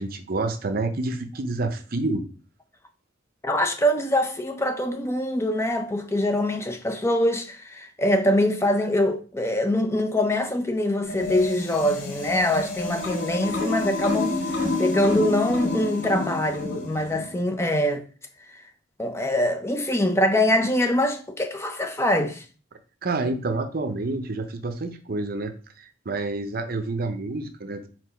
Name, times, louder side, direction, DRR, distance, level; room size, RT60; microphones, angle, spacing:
voice 1, 0.0-2.2 23.0-27.9, right 2 dB, 50° right, 0.7 m, -28 dB
voice 2, 3.4-18.0 18.5-18.6 19.0-22.4, left 1 dB, 15° left, 0.6 m, -24 dB
sound 1, 11.0-17.4, left 2 dB, 70° left, 1.9 m, -29 dB
4.7 x 3.9 x 5.1 m
head